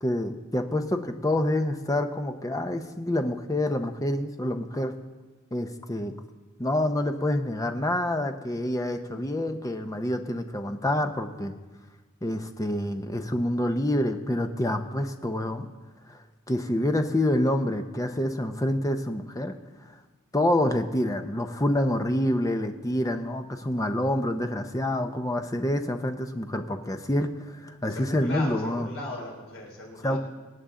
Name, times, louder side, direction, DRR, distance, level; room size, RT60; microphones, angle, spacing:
voice 1, 0.0-4.9 5.5-6.1 6.6-11.5 12.2-15.7 16.1-16.2 16.5-19.5 20.3-27.3 27.6-28.9 30.0-30.2, left 1 dB, 15° left, 6 dB, 0.7 m, -27 dB
voice 2, 27.9-30.2, left 1 dB, 65° left, -1 dB, 3.3 m, -37 dB
24.5 x 8.7 x 3.8 m, 1.3 s
head